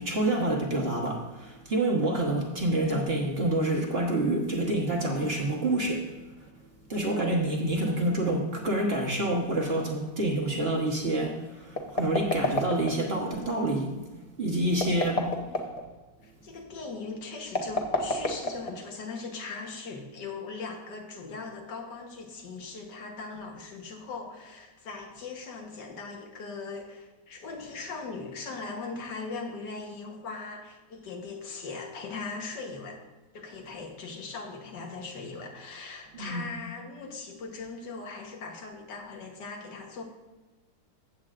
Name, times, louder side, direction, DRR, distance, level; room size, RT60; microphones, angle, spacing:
voice 1, 0.0-6.2 6.9-14.0 14.4-15.3 36.1-36.5, right 1 dB, 40° right, -1 dB, 1.3 m, -27 dB
sound 1, 11.7-13.2 14.7-15.8 17.5-19.0, left 2 dB, 30° left, 0.8 m, -29 dB
voice 2, 16.2-33.0 33.3-40.0, left 4 dB, 80° left, 2 dB, 1.8 m, -39 dB
15.0 x 7.9 x 2.5 m, 1.2 s
omnidirectional pair, 1.8 m